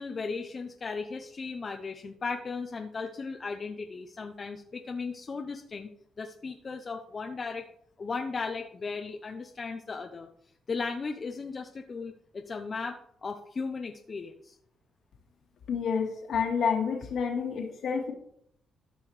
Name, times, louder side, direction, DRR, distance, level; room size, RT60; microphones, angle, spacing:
voice 1, 0.0-5.9 6.2-7.7 8.0-10.3 10.7-14.6, left 4 dB, 35° left, 4 dB, 0.7 m, -36 dB
voice 2, 15.7-18.1, left 6 dB, 65° left, 1 dB, 2.1 m, -29 dB
14.0 x 5.6 x 3.3 m, 0.68 s
cardioid pair, 90°, 0 cm